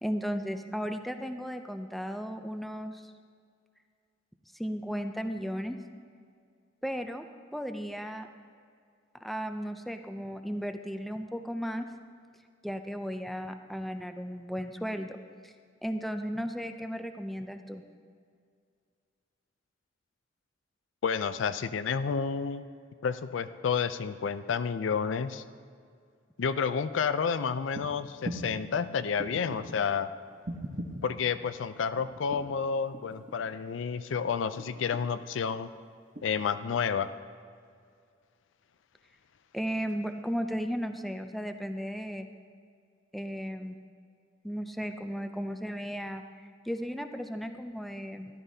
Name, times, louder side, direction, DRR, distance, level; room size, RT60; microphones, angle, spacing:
voice 1, 0.0-3.1 4.5-5.8 6.8-7.2 7.5-8.3 9.2-11.9 12.6-15.2 15.4-15.5 15.8-17.8 39.5-42.3 43.1-43.8 44.4-46.2 46.6-48.3, equal, ahead, 7 dB, 0.4 m, -35 dB
voice 2, 21.0-22.6 23.0-25.4 26.4-30.1 31.0-35.7 36.2-37.1, left 6 dB, 85° left, 12 dB, 0.4 m, -30 dB
sound 1, 27.7-27.9 28.2-28.6 29.2-29.8 30.4-31.1 32.0-32.6 32.9-33.6 34.6-35.2 36.2-36.3, right 1 dB, 40° right, 1.0 m, -39 dB
13.5 x 12.5 x 2.8 m, 2.2 s
head